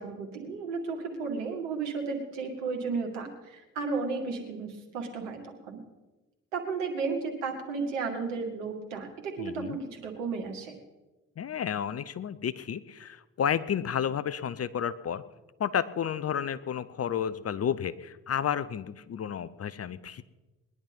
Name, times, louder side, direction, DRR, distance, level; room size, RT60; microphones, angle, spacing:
voice 1, 0.0-5.8 6.5-10.7, right 4 dB, 80° right, 3 dB, 2.1 m, -34 dB
voice 2, 9.4-9.8 11.4-15.2 15.6-20.2, left 8 dB, 40° left, 16 dB, 0.9 m, -31 dB
20.5 x 11.0 x 5.3 m, 1.1 s
hypercardioid pair, 45°, 35 cm